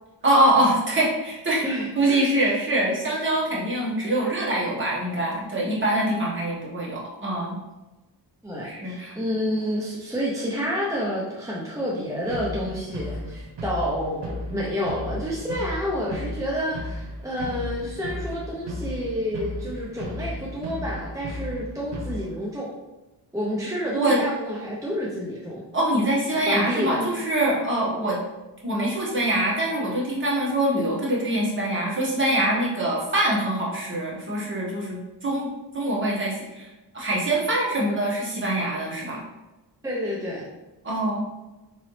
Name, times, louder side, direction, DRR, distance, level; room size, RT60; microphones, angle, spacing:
voice 1, 0.2-1.6 1.9-7.6 8.6-9.1 23.9-24.2 25.7-28.2 28.6-36.7 36.9-39.2 40.8-41.2, right 1 dB, 30° right, -5 dB, 1.2 m, -24 dB
voice 2, 1.6-2.3 8.4-22.7 23.3-25.6 26.5-27.0 39.8-40.5, equal, 10° right, -5 dB, 0.5 m, -29 dB
sound 1, 12.2-22.3, left 1 dB, 75° right, 0.9 m, -35 dB
3.9 x 3.1 x 3.1 m, 1.1 s
wide cardioid pair, 140°, 41 cm